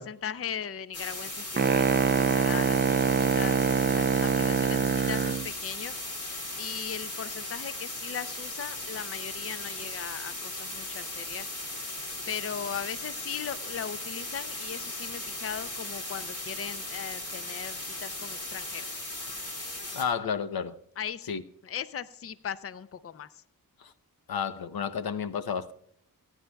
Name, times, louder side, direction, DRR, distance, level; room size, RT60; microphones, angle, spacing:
voice 1, 0.0-2.8 3.1-5.9 6.6-11.5 12.3-19.0 21.0-23.4, left 8 dB, 40° left, 0.5 m, -38 dB
sound 1, 0.9-20.0, left 2 dB, 55° left, 2.8 m, -37 dB
sound 2, 1.6-5.5, right 6 dB, 30° right, 0.5 m, -24 dB
voice 2, 19.9-20.7 21.3-21.4 23.8-23.9 24.3-25.7, left 7 dB, 75° left, 0.8 m, -31 dB
27.5 x 9.9 x 2.3 m
cardioid pair, 65°, 37 cm